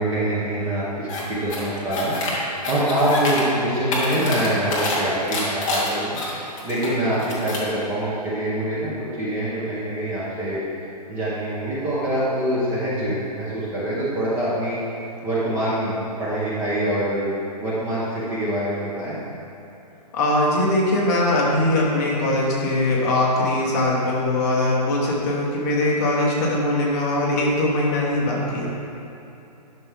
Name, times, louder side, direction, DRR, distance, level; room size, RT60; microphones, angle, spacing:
voice 1, 0.0-6.2 6.6-10.6 11.1-14.8 15.2-17.3 17.6-19.2, right 1 dB, 10° right, -9 dB, 0.9 m, -25 dB
sound 1, 1.1-1.2 1.5-2.3 2.6-3.4 3.7-5.0 5.3-6.9 7.2-7.7, left 2 dB, 5° left, 0.3 m, -26 dB
voice 2, 20.1-28.7, left 1 dB, 25° left, -4 dB, 1.1 m, -21 dB
11.0 x 6.0 x 3.5 m, 2.9 s
hypercardioid pair, 170°, 21 cm